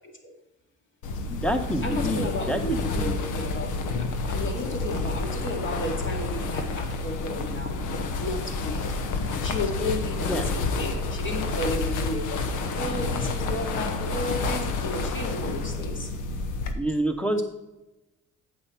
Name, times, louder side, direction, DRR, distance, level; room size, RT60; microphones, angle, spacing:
sound 1, 1.0-16.7, left 3 dB, 85° left, 1.1 m, -29 dB
voice 1, 1.3-3.1 10.2-10.4 16.7-17.4, right 1 dB, 5° left, 6 dB, 1.1 m, -28 dB
voice 2, 1.8-3.7 4.3-7.8 8.1-8.8 9.2-16.1, left 1 dB, 40° left, 1 dB, 2.3 m, -33 dB
8.6 x 7.7 x 4.4 m, 1.0 s
cardioid pair, 90°, 30 cm